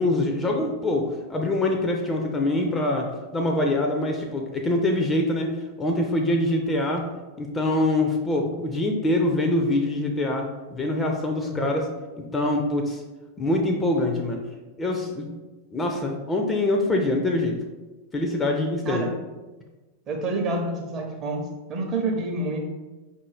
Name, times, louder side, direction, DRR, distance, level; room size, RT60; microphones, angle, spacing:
voice 1, 0.0-5.5 5.8-7.1 7.4-11.9 12.3-13.0 13.4-14.4 14.8-15.3 15.7-17.6 18.1-19.1, left 1 dB, 15° left, 2 dB, 0.5 m, -24 dB
voice 2, 11.4-11.8 18.8-19.1 20.1-22.7, right 2 dB, 30° right, 1 dB, 0.8 m, -28 dB
5.3 x 2.7 x 3.2 m, 1.2 s
figure-of-eight pair, 90°, 0 cm